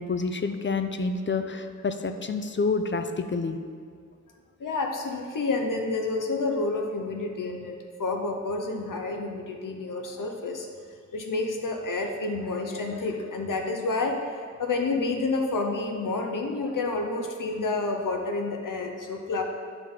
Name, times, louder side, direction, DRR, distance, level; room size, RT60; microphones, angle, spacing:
voice 1, 0.0-3.6, left 4 dB, 40° left, 8 dB, 0.5 m, -28 dB
voice 2, 4.6-7.7 8.0-10.7 11.1-14.2 14.6-19.4, left 3 dB, 85° left, 2 dB, 0.9 m, -29 dB
9.2 x 5.6 x 3.8 m, 2.1 s
wide cardioid pair, 95°, 31 cm